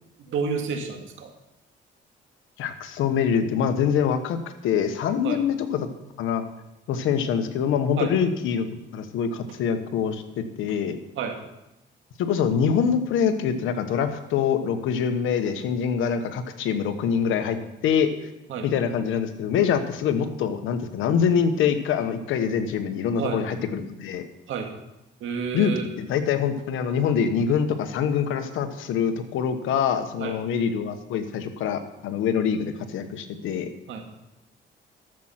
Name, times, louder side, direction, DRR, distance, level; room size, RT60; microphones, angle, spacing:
voice 1, 0.2-1.3 5.2-5.4 8.0-8.1 11.2-11.4 18.5-18.7 23.1-23.4 24.5-24.7 25.2-25.9 30.2-30.4 33.9-34.0, right 6 dB, 80° right, 4 dB, 2.0 m, -30 dB
voice 2, 2.6-4.4 4.6-5.9 6.2-6.4 6.9-8.7 8.9-11.0 12.2-18.1 18.6-24.2 25.5-33.7, left 7 dB, 90° left, 9 dB, 1.2 m, -25 dB
12.5 x 7.7 x 5.8 m, 0.90 s
cardioid pair, 90°, 20 cm